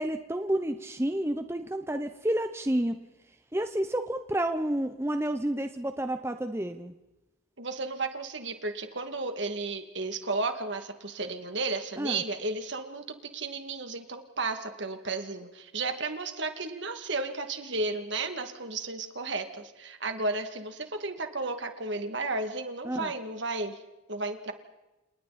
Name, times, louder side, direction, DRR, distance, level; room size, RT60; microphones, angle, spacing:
voice 1, 0.0-3.0 3.5-6.9 12.0-12.2 22.8-23.1, right 1 dB, 10° right, 8 dB, 0.9 m, -30 dB
voice 2, 7.6-13.0 13.3-23.8 24.1-24.5, right 3 dB, 60° right, 6 dB, 2.5 m, -33 dB
29.5 x 29.0 x 4.4 m, 1.0 s
head